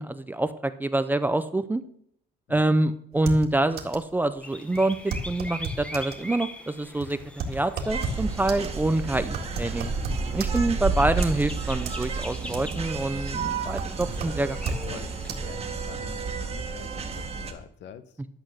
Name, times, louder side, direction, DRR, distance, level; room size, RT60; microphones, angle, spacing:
voice 1, 0.0-1.8 2.5-7.2 7.5-9.9 10.3-14.7 18.2-18.3, right 2 dB, 10° right, 11 dB, 0.4 m, -26 dB
sound 1, 3.1-4.1 4.4-4.5 4.7-6.2 6.8-10.9 11.2-12.1 12.4-13.0 13.3-14.9 15.3-15.4, right 3 dB, 55° right, 1.9 m, -34 dB
sound 2, 4.4-15.4, left 1 dB, 5° left, 0.9 m, -43 dB
sound 3, 7.9-17.5, right 4 dB, 30° right, 1.5 m, -31 dB
voice 2, 14.8-18.1, left 8 dB, 65° left, 12 dB, 1.0 m, -45 dB
12.0 x 7.8 x 6.4 m, 0.68 s
cardioid pair, 165°, 19 cm